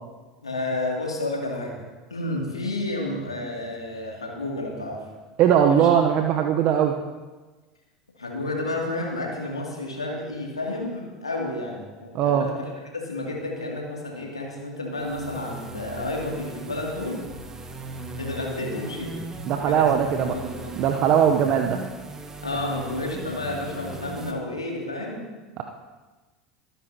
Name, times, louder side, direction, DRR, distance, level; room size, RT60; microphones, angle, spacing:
voice 1, 0.4-1.7 2.1-5.0 5.7-5.9 8.2-17.2 18.2-19.2 19.7-19.9 20.2-20.7 22.4-25.3, left 2 dB, 90° left, -1 dB, 2.6 m, -31 dB
voice 2, 5.4-7.0 12.1-12.5 19.5-20.4 20.8-21.8 25.6-25.7, right 8 dB, 50° right, 4 dB, 0.9 m, -20 dB
sound 1, 14.9-24.3, right 2 dB, 20° right, 1.7 m, -38 dB
24.5 x 10.0 x 2.9 m, 1.3 s
figure-of-eight pair, 75°, 3 cm